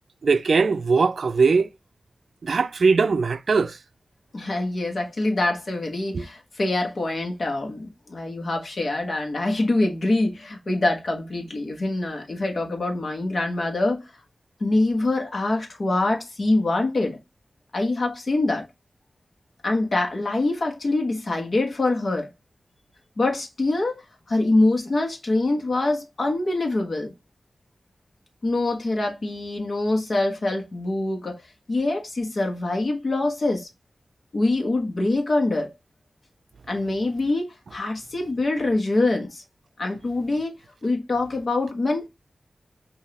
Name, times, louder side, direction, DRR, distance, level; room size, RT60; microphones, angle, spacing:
voice 1, 0.2-1.7 2.4-3.8 6.1-6.2, right 4 dB, 80° right, 0.4 m, -20 dB
voice 2, 4.3-14.0 14.6-17.2 17.7-18.7 19.6-22.3 23.2-24.0 24.3-27.1 28.4-31.4 31.7-33.7 34.3-35.7 36.7-39.4 39.8-40.5 40.8-42.1, left 2 dB, 65° left, 1.2 m, -24 dB
5.0 x 2.7 x 2.9 m
wide cardioid pair, 70°, 0 cm